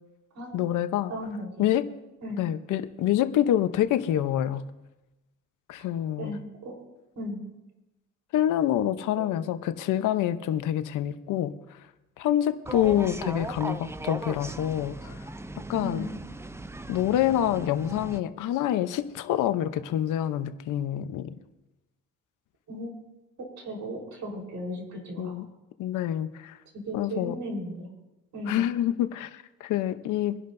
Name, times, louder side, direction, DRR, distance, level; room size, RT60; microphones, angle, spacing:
voice 1, 0.5-1.1 1.6-1.9 2.4-4.6 5.7-6.3 8.3-11.8 12.2-15.2 15.6-16.0 16.9-21.3 25.2-25.5 25.8-26.6 26.9-27.4 28.5-30.4, left 11 dB, 85° left, 10 dB, 0.9 m, -27 dB
voice 2, 1.1-1.6 2.2-2.4 6.2-6.7 7.2-7.4 9.1-9.3 12.8-13.0 15.8-16.1 22.7-22.9 23.6-25.3 26.9-27.9 28.3-28.6, equal, 65° right, 0 dB, 4.2 m, -35 dB
sound 1, 12.7-18.2, right 2 dB, 10° right, 0.5 m, -38 dB
24.5 x 11.0 x 2.7 m, 1.0 s
cardioid pair, 90°, 30 cm